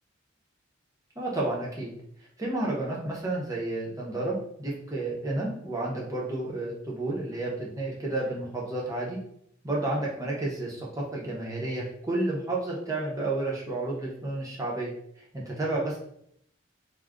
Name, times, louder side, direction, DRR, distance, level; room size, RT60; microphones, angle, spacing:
voice 1, 1.2-1.9 2.4-9.2 9.6-14.9 15.3-16.0, right 2 dB, 15° right, -4 dB, 0.7 m, -31 dB
2.3 x 2.1 x 3.5 m, 0.70 s
head